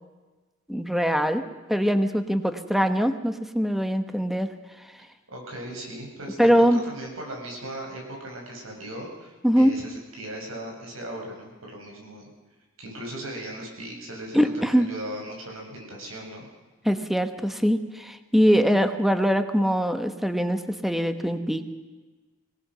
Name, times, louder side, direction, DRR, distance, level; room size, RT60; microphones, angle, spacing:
voice 1, 0.7-1.4 1.7-4.5 6.4-6.8 9.4-9.7 14.3-14.9 16.8-21.7, equal, ahead, 8 dB, 1.2 m, -22 dB
voice 2, 5.3-12.3 12.8-16.5, right 1 dB, 85° right, 0 dB, 6.8 m, -38 dB
24.5 x 18.0 x 6.2 m, 1.2 s
head